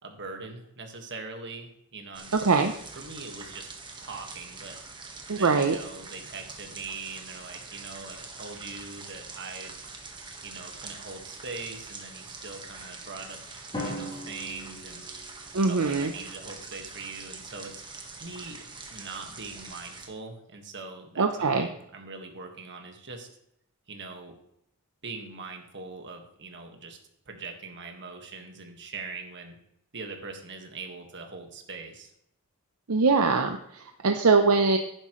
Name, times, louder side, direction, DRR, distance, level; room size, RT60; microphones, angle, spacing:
voice 1, 0.0-2.4 2.9-3.7 4.0-4.8 5.4-9.7 10.4-13.4 13.7-15.1 15.7-17.8 18.2-18.6 18.9-23.3 23.9-24.3 25.0-27.0 27.2-29.6 29.9-32.1, right 4 dB, 55° right, 4 dB, 1.7 m, -42 dB
sound 1, 2.1-20.1, right 4 dB, 20° right, 1.4 m, -44 dB
voice 2, 2.3-2.7 5.3-5.8 15.5-16.1 21.2-21.7 32.9-34.8, right 4 dB, 75° right, 5 dB, 0.7 m, -22 dB
Drum, 13.7-15.8, left 1 dB, 20° left, 3.7 m, -38 dB
11.5 x 9.9 x 3.1 m, 0.75 s
head